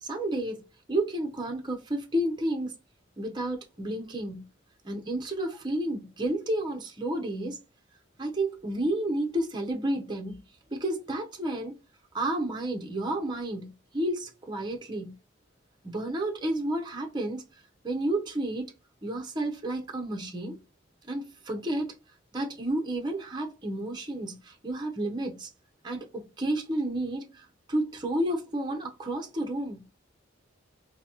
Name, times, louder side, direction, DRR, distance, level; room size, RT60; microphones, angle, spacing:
voice 1, 0.0-2.7 3.2-4.5 4.8-7.6 8.2-10.4 10.7-11.8 12.1-15.2 15.8-17.4 17.8-18.7 19.0-20.6 21.1-22.0 22.3-25.5 25.8-29.9, right 1 dB, 20° right, 0.7 m, -31 dB
3.9 x 2.7 x 2.8 m
head